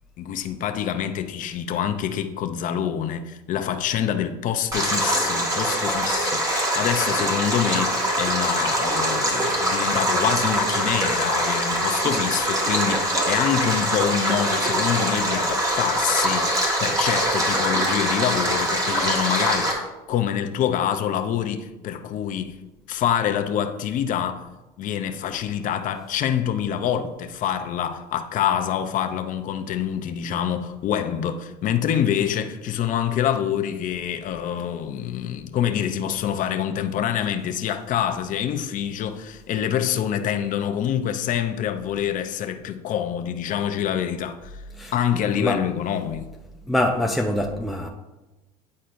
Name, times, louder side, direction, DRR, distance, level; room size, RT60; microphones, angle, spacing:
voice 1, 0.2-22.6 22.9-24.5 24.8-44.6 44.9-46.3, left 9 dB, 45° left, 0.6 m, -26 dB
Stream, 4.7-19.7, right 1 dB, 20° right, 1.6 m, -23 dB
voice 2, 46.7-47.9, left 1 dB, ahead, 0.5 m, -24 dB
9.4 x 4.2 x 2.6 m
supercardioid pair, 95°, 18 cm